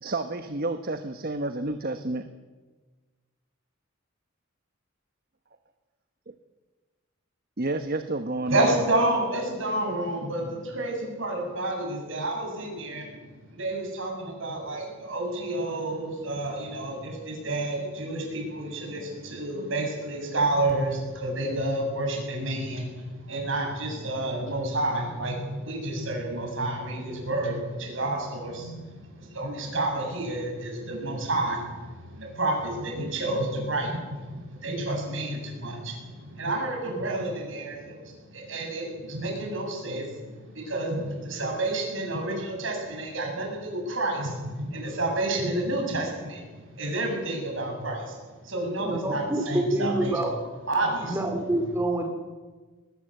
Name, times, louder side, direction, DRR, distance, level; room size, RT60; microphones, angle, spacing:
voice 1, 0.0-2.3 7.6-8.8, right 2 dB, 45° right, 8 dB, 1.1 m, -30 dB
voice 2, 8.5-13.2 13.5-51.2, right 2 dB, 65° right, 1 dB, 7.7 m, -30 dB
voice 3, 48.8-50.3 51.0-52.1, right 1 dB, 15° right, 3 dB, 2.8 m, -27 dB
21.5 x 20.0 x 7.9 m, 1.3 s
head